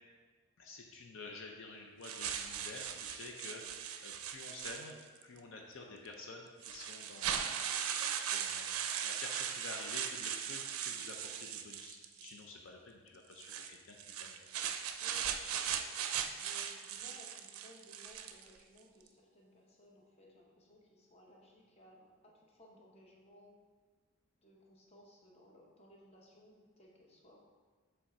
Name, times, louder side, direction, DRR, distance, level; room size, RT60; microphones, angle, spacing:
voice 1, 0.6-3.6 4.0-5.0 5.2-7.5 8.3-14.3, left 3 dB, 65° left, 1 dB, 0.5 m, -50 dB
sound 1, 2.0-5.2 6.1-6.2 6.6-12.4 13.3-18.5, right 8 dB, 90° right, 0.4 m, -39 dB
voice 2, 15.0-15.9 16.4-23.6 24.4-27.4, equal, 30° left, -2 dB, 0.9 m, -60 dB
7.2 x 3.4 x 4.2 m, 1.5 s
head